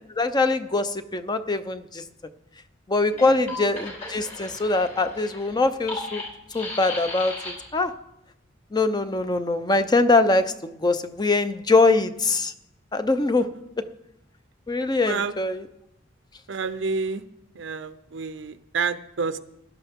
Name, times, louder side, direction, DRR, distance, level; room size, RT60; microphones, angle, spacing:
voice 1, 0.2-2.0 2.9-6.2 6.5-7.3 7.7-7.9 8.7-12.5 12.9-13.4 14.7-15.6, left 3 dB, 20° left, 10 dB, 0.6 m, -22 dB
sound 1, 3.0-7.8, left 2 dB, 40° left, 4.8 m, -36 dB
voice 2, 3.1-3.6 13.4-13.5 15.1-15.3 16.5-17.2 17.5-19.4, right 4 dB, 70° right, 11 dB, 0.6 m, -29 dB
16.5 x 11.5 x 3.6 m, 0.84 s
head